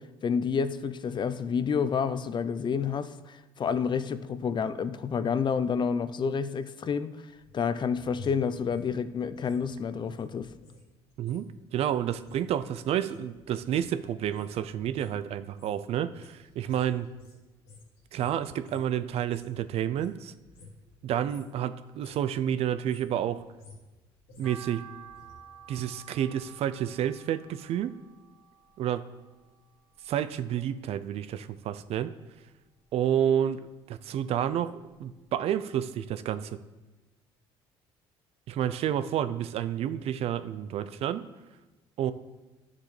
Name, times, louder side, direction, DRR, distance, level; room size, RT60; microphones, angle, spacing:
voice 1, 0.0-7.2 7.5-10.5, left 6 dB, 45° left, 13 dB, 0.5 m, -29 dB
sound 1, 7.4-10.8 11.1-19.6 19.9-20.9 21.2-21.6 21.9-22.3 22.7-25.3 25.6-25.7, left 3 dB, 80° left, 3.1 m, -52 dB
voice 2, 11.2-17.1 18.1-20.3 21.0-23.4 24.4-24.8 25.7-28.0 28.8-29.0 30.1-32.1 32.9-33.6 33.9-34.7 35.0-36.6 38.5-41.3 42.0-42.1, right 10 dB, 60° right, 12 dB, 0.5 m, -30 dB
sound 2, 24.4-30.7 31.1-32.3 32.6-34.0 34.4-34.5 35.0-35.1 35.3-35.4, right 7 dB, 5° right, 2.1 m, -52 dB
11.0 x 7.3 x 3.3 m, 1.2 s
supercardioid pair, 70°, 12 cm